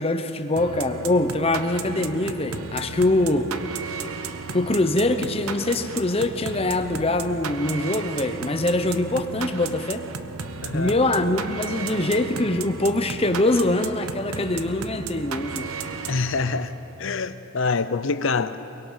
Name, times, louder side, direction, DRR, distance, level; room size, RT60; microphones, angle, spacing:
voice 1, 0.0-3.5 4.5-10.0 10.7-15.7, left 2 dB, 25° left, 0.9 m, -23 dB
sound 1, 0.6-16.9, right 5 dB, 90° right, 0.9 m, -35 dB
voice 2, 10.6-11.0 16.1-16.7 17.0-18.6, left 4 dB, 60° left, 0.6 m, -25 dB
23.0 x 21.0 x 5.7 m
head